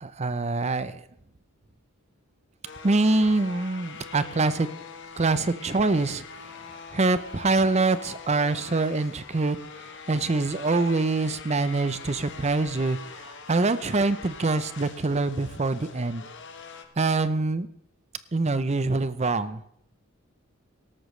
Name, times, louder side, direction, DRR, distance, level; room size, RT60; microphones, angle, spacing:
voice 1, 0.0-1.0 2.8-4.7 5.2-6.2 6.9-9.6 10.1-16.2 17.0-17.7 18.3-19.6, right 3 dB, 30° right, 14 dB, 0.6 m, -25 dB
sound 1, 2.6-16.9, left 4 dB, 55° left, 1.3 m, -43 dB
17.5 x 13.0 x 3.2 m, 0.73 s
head